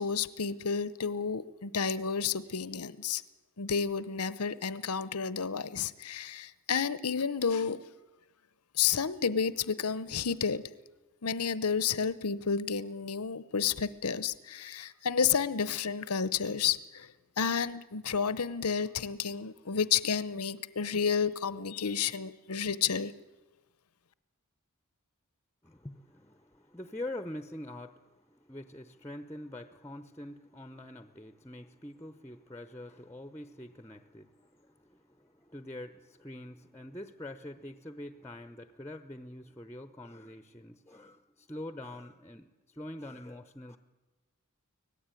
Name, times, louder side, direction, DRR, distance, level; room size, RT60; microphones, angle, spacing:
voice 1, 0.0-3.2 3.6-7.8 8.7-10.6 11.2-17.1 17.4-23.1, left 6 dB, 85° left, 16 dB, 0.9 m, -31 dB
voice 2, 25.6-43.8, left 1 dB, 10° left, 10 dB, 0.8 m, -45 dB
25.0 x 17.5 x 9.1 m, 1.2 s
head